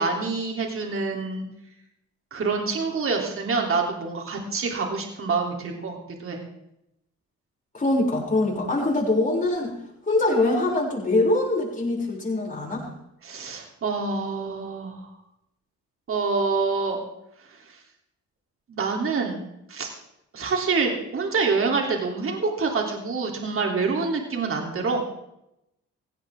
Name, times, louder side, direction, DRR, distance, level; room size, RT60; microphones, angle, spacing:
voice 1, 0.0-1.5 2.3-6.4 13.2-15.1 16.1-17.0 17.7-17.8 18.7-19.4 19.7-19.9 20.3-25.0, right 4 dB, 45° right, 1 dB, 3.4 m, -26 dB
voice 2, 7.7-9.8 10.1-12.9, left 2 dB, 25° left, -3 dB, 7.1 m, -23 dB
17.0 x 16.5 x 3.8 m, 0.83 s
cardioid pair, 90°, 30 cm